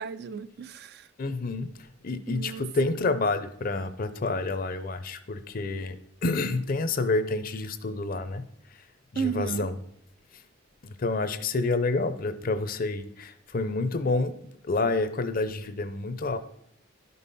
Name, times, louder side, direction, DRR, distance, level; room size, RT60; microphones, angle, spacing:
voice 1, 0.0-1.1 2.3-2.7 9.2-9.7, right 6 dB, 55° right, 0.4 m, -33 dB
voice 2, 1.2-1.7 2.0-6.0 6.2-8.4 9.1-9.8 10.8-14.3 14.6-16.4, left 3 dB, 45° left, 0.6 m, -28 dB
12.0 x 5.4 x 4.1 m
head